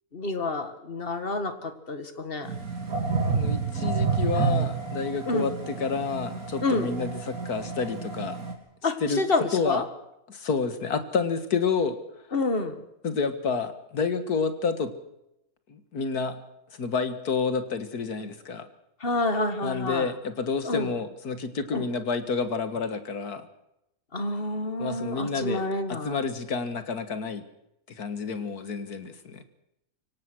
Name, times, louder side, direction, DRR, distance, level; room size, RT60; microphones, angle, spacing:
voice 1, 0.1-2.5 5.3-5.5 6.6-6.9 8.8-9.8 12.3-12.8 19.0-20.1 20.7-20.9 21.7-21.9 24.1-26.2, left 2 dB, 40° left, 9 dB, 2.0 m, -28 dB
sound 1, 2.4-8.5, right 5 dB, 70° right, 3.6 m, -29 dB
voice 2, 3.3-8.4 9.0-9.2 9.5-9.8 10.3-12.0 13.0-14.9 15.7-16.4 16.8-18.7 19.6-23.5 24.8-25.6 25.9-27.4 28.0-29.4, left 5 dB, 80° left, 10 dB, 2.2 m, -29 dB
24.5 x 17.5 x 6.2 m, 0.84 s
omnidirectional pair, 1.6 m